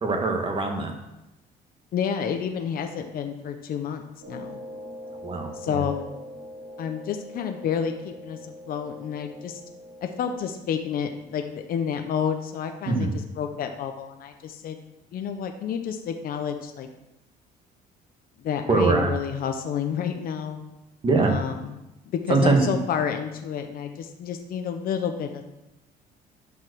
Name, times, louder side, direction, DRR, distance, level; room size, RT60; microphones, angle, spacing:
voice 1, 0.0-0.9 5.2-5.8 12.9-13.1 18.7-19.1 21.0-21.3 22.3-22.8, right 3 dB, 30° right, 2 dB, 2.2 m, -22 dB
voice 2, 1.9-4.6 5.5-6.2 6.8-9.6 10.0-13.1 13.4-14.8 15.1-16.9 18.4-20.6 21.2-21.8 22.1-25.4, left 7 dB, 60° left, 5 dB, 1.0 m, -30 dB
sound 1, 4.2-10.4, left 1 dB, 60° right, 4.2 m, -42 dB
11.0 x 5.5 x 6.4 m, 0.94 s
cardioid pair, 110°, 17 cm